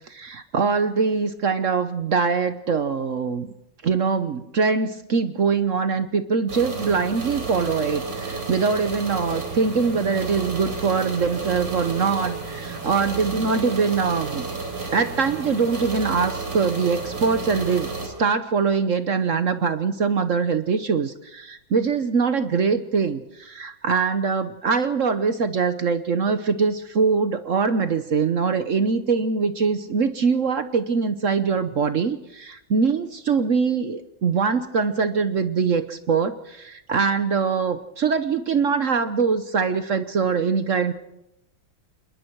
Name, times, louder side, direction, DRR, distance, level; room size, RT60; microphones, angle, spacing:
voice 1, 0.1-3.5 3.8-14.4 14.9-40.9, right 5 dB, 50° right, 10 dB, 1.0 m, -23 dB
sound 1, 6.5-18.1, right 4 dB, 75° right, 5.2 m, -32 dB
27.0 x 21.5 x 4.7 m, 0.84 s
omnidirectional pair, 2.2 m